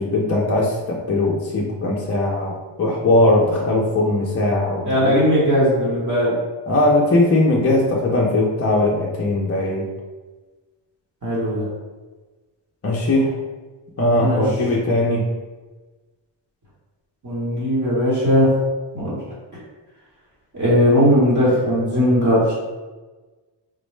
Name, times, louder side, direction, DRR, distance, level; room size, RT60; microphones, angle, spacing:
voice 1, 0.0-5.2 6.7-9.9 12.8-13.3 14.0-15.3, left 2 dB, 35° left, -3 dB, 0.4 m, -19 dB
voice 2, 4.8-6.3 11.2-11.7 14.2-14.4 17.2-18.5 18.9-19.2 20.5-22.5, equal, 40° right, -8 dB, 1.1 m, -18 dB
3.7 x 2.0 x 3.1 m, 1.2 s
wide cardioid pair, 180°, 48 cm